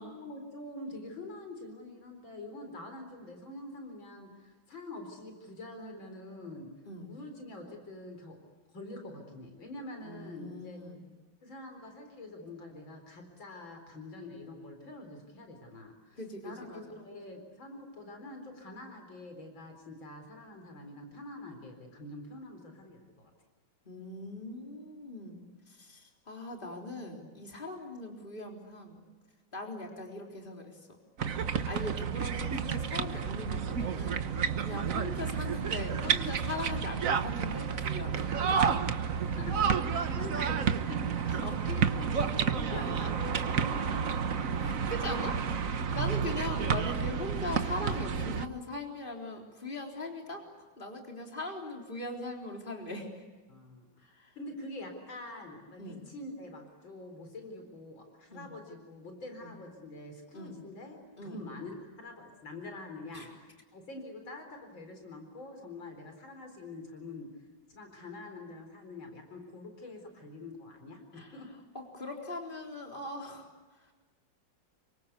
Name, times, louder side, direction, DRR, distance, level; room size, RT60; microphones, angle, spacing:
voice 1, 0.0-6.7 7.1-8.4 8.7-10.8 11.4-23.3 39.4-45.0 45.3-45.8 46.4-46.5 53.5-71.5, left 2 dB, 90° left, 5 dB, 5.0 m, -45 dB
voice 2, 10.0-11.0 16.2-16.8 23.9-29.0 29.5-31.0 31.7-38.4 41.3-41.6 42.7-42.9 44.6-45.4 45.9-50.5 50.8-53.2 54.1-54.3 55.8-56.1 58.3-58.5 59.4-59.5 60.3-60.6 61.2-61.4 63.1-63.3 71.1-71.3 71.7-73.5, left 2 dB, 25° left, 1 dB, 4.1 m, -40 dB
sound 1, 31.2-48.5, right 6 dB, 50° right, 1.4 m, -30 dB
28.5 x 24.5 x 8.4 m, 1.3 s
omnidirectional pair, 2.1 m